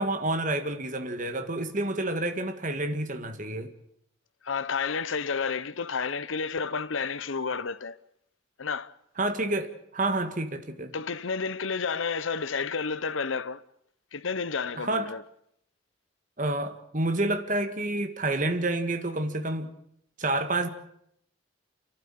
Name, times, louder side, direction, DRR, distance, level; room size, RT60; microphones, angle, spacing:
voice 1, 0.0-3.7 9.2-10.9 14.8-15.1 16.4-19.7 20.2-20.7, right 2 dB, 40° right, 1.8 m, -29 dB
voice 2, 4.4-8.0 8.6-8.9 10.9-13.6 14.1-15.2, left 5 dB, 85° left, 0.9 m, -31 dB
29.5 x 12.0 x 8.9 m
head